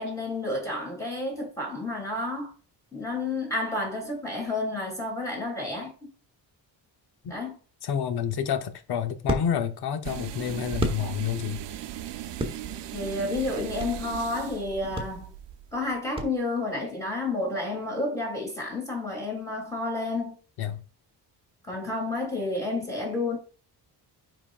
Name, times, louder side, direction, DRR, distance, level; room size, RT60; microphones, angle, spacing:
voice 1, 0.0-2.5 2.9-5.9 7.3-7.6 12.9-15.3 15.7-20.4 21.6-23.4, left 2 dB, 10° left, 2.8 m, -30 dB
voice 2, 7.8-11.6 20.6-20.8, left 8 dB, 65° left, 0.9 m, -29 dB
sound 1, 8.1-11.6 11.9-14.1 14.5-14.6 14.9-16.8, right 2 dB, 15° right, 1.1 m, -34 dB
sound 2, 10.0-16.0, right 11 dB, 85° right, 0.7 m, -38 dB
10.0 x 3.9 x 2.4 m
cardioid pair, 155°, 41 cm